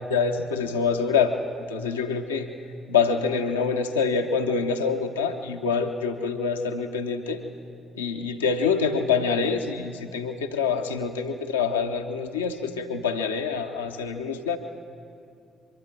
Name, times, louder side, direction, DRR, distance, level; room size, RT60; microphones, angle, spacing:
voice 1, 0.0-2.5 2.9-7.4 7.9-14.6, left 5 dB, 90° left, 4 dB, 0.9 m, -26 dB
23.5 x 13.0 x 9.0 m, 2.4 s
hypercardioid pair, 45°, 0 cm